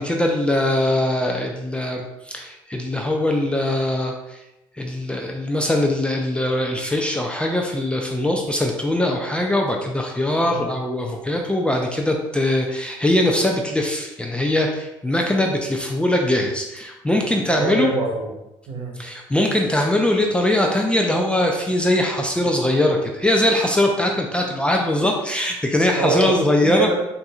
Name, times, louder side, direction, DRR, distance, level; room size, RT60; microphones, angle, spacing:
voice 1, 0.0-4.4 4.8-17.9 19.0-26.9, left 1 dB, 10° left, 1 dB, 0.4 m, -21 dB
voice 2, 17.1-18.3 18.7-19.0 25.9-26.9, right 2 dB, 60° right, 0 dB, 0.9 m, -25 dB
4.0 x 2.6 x 2.4 m, 0.94 s
hypercardioid pair, 70°, 11 cm